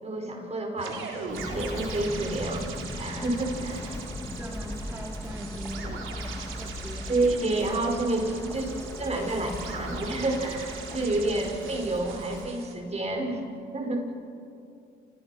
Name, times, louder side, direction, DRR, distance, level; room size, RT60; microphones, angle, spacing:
voice 1, 0.0-4.0 7.1-8.7 9.0-13.4 13.7-14.3, right 2 dB, 35° right, 3 dB, 5.0 m, -29 dB
sound 1, 0.8-12.7, right 6 dB, 80° right, 3.9 m, -41 dB
Walk footsteps, 1.3-12.5, left 2 dB, 15° left, 1.5 m, -38 dB
voice 2, 4.3-7.1 11.0-11.1, right 1 dB, 15° right, -1 dB, 2.6 m, -41 dB
29.0 x 28.0 x 5.8 m, 2.6 s
cardioid pair, 90°, 20 cm